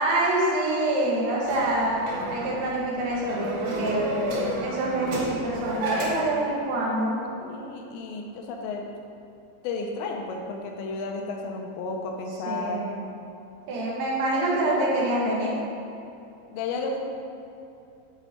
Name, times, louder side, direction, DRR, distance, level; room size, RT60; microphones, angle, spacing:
voice 1, 0.0-2.0 2.3-7.2 12.5-13.0 13.7-15.6, right 1 dB, 85° right, -5 dB, 3.6 m, -26 dB
sound 1, 1.4-6.4, right 1 dB, 70° right, 3.1 m, -32 dB
voice 2, 7.3-8.8 9.6-12.9 16.5-17.0, left 3 dB, 85° left, 1 dB, 2.9 m, -32 dB
9.0 x 4.0 x 4.3 m, 2.8 s
omnidirectional pair, 5.2 m